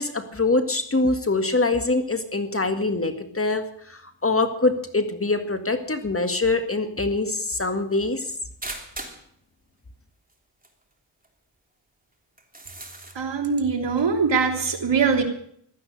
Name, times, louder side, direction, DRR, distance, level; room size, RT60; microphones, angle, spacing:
voice 1, 0.0-8.3, left 3 dB, 30° left, 8 dB, 1.8 m, -24 dB
sound 1, 8.6-9.3 10.3-10.4 10.6-10.7 11.2-11.3 12.4-13.1, right 2 dB, 20° right, 3.2 m, -37 dB
voice 2, 13.1-15.2, right 5 dB, 65° right, 3 dB, 3.3 m, -22 dB
16.0 x 12.5 x 6.6 m, 0.64 s
wide cardioid pair, 85°, 46 cm